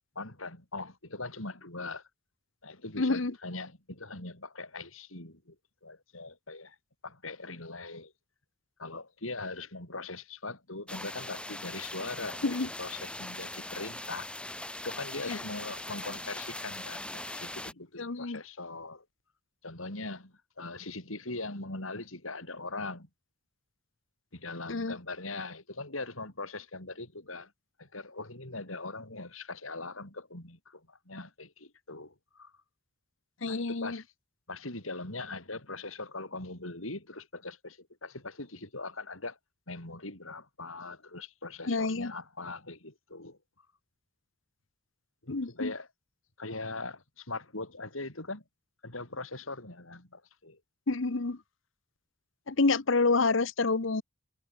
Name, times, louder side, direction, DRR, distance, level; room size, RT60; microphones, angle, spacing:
voice 1, 0.2-2.1 2.6-5.6 5.8-6.8 7.0-8.1 8.8-14.3 14.8-19.1 19.6-23.1 24.3-27.5 27.8-32.5 33.5-34.1 34.5-39.4 39.7-43.4 45.2-45.9 46.4-48.4 48.8-50.6, left 3 dB, 85° left, 7.0 m, -41 dB
voice 2, 3.0-3.3 12.4-12.7 15.3-15.4 18.0-18.4 24.7-25.0 33.4-34.0 41.7-42.1 45.3-45.7 50.9-51.4 52.5-54.0, left 3 dB, 65° left, 1.0 m, -28 dB
sound 1, 10.9-17.7, left 1 dB, 5° left, 4.4 m, -41 dB
head